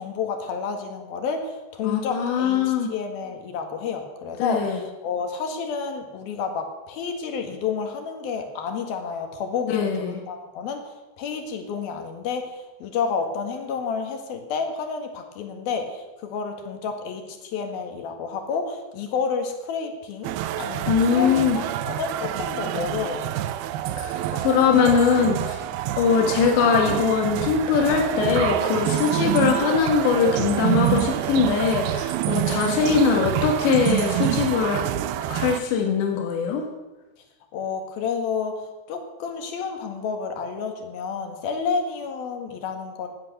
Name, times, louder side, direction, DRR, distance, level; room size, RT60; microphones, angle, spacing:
voice 1, 0.0-23.4 37.5-38.5 38.9-43.1, left 5 dB, 65° left, 5 dB, 3.4 m, -30 dB
voice 2, 1.8-2.9 4.4-4.8 9.7-10.1 20.9-21.6 24.0-25.6 26.0-34.8 35.3-36.7, left 6 dB, 85° left, 2 dB, 4.0 m, -21 dB
sound 1, 20.2-35.6, right 13 dB, 75° right, 2.4 m, -27 dB
16.5 x 12.0 x 6.8 m, 1.1 s
omnidirectional pair, 5.0 m